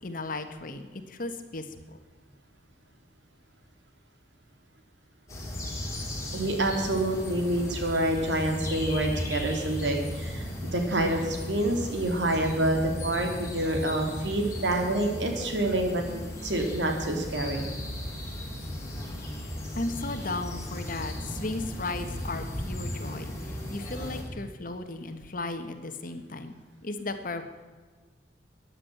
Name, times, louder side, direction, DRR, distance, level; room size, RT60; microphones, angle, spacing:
voice 1, 0.0-2.0 19.8-26.5 26.8-27.4, left 2 dB, 50° left, 8 dB, 1.5 m, -35 dB
sound 1, 5.3-24.2, left 1 dB, 15° left, 4.1 m, -36 dB
voice 2, 6.3-16.0 16.4-17.6, right 1 dB, 80° right, 3 dB, 3.0 m, -27 dB
14.0 x 10.0 x 8.6 m, 1.4 s
head